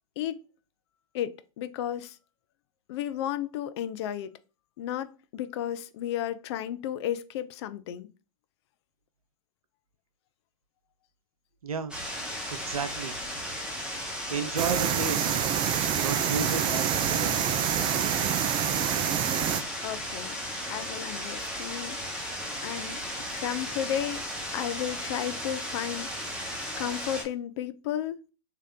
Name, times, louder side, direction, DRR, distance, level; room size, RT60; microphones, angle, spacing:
voice 1, 1.1-2.2 2.9-4.3 4.8-8.1 19.8-20.4 20.7-22.0 22.6-23.0 23.3-24.2 24.5-26.2 26.8-28.2, left 10 dB, 50° left, 0.5 m, -33 dB
voice 2, 11.6-12.0 12.5-13.2 14.3-15.5 16.0-17.5, right 5 dB, 80° right, 0.6 m, -32 dB
sound 1, 11.9-27.2, equal, 5° right, 1.2 m, -35 dB
sound 2, 14.6-19.6, right 9 dB, 25° right, 0.4 m, -27 dB
3.2 x 2.8 x 3.7 m
hypercardioid pair, 105°, 18 cm